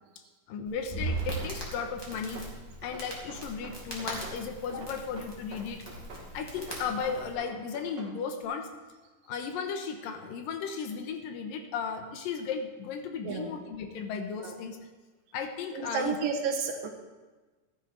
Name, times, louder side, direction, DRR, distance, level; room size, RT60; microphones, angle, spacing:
voice 1, 0.5-2.4 2.8-5.8 6.3-8.7 9.3-14.8 15.3-16.2, left 6 dB, 90° left, 6 dB, 2.8 m, -35 dB
Crackle, 0.7-7.3, right 2 dB, 10° left, 2.2 m, -39 dB
sound 1, 1.1-2.5 2.8-4.4 4.7-6.3 6.6-8.1, right 2 dB, 35° right, 2.2 m, -46 dB
voice 2, 15.7-16.9, right 5 dB, 80° right, 2 dB, 3.0 m, -31 dB
13.5 x 10.0 x 4.5 m, 1.3 s
omnidirectional pair, 3.9 m